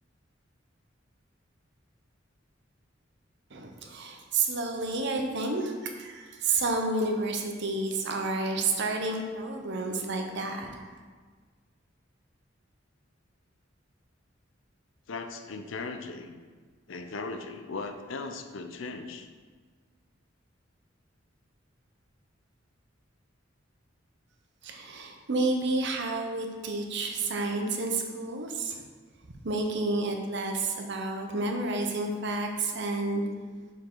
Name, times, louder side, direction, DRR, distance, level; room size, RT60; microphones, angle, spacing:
voice 1, 3.5-10.7 24.6-28.8 29.4-33.2, right 3 dB, 60° right, 3 dB, 0.8 m, -30 dB
voice 2, 15.1-16.4 16.9-19.3, left 3 dB, 75° left, 6 dB, 0.6 m, -38 dB
6.4 x 4.9 x 3.8 m, 1.5 s
head